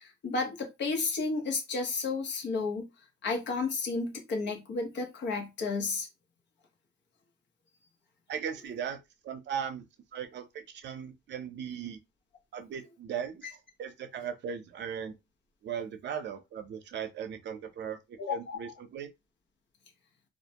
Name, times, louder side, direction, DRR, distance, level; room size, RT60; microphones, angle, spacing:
voice 1, 0.0-2.9 3.2-6.1 18.2-18.6, left 4 dB, 65° left, 0.9 m, -32 dB
voice 2, 8.3-9.0 9.2-9.8 10.1-12.0 12.5-13.5 13.8-15.2 15.6-19.1, right 8 dB, 65° right, 0.6 m, -38 dB
2.4 x 2.1 x 2.8 m
cardioid pair, 90°, 20 cm